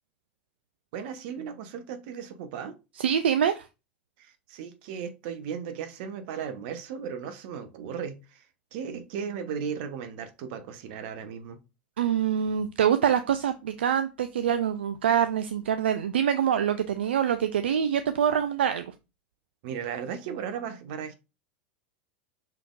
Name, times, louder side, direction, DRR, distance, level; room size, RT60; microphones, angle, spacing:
voice 1, 0.9-2.8 4.2-8.5 8.7-11.6 19.6-21.1, right 7 dB, 65° right, 0.8 m, -36 dB
voice 2, 3.0-3.7 12.0-18.9, right 9 dB, 80° right, 0.3 m, -25 dB
5.6 x 3.5 x 2.4 m
hypercardioid pair, 90°, 6 cm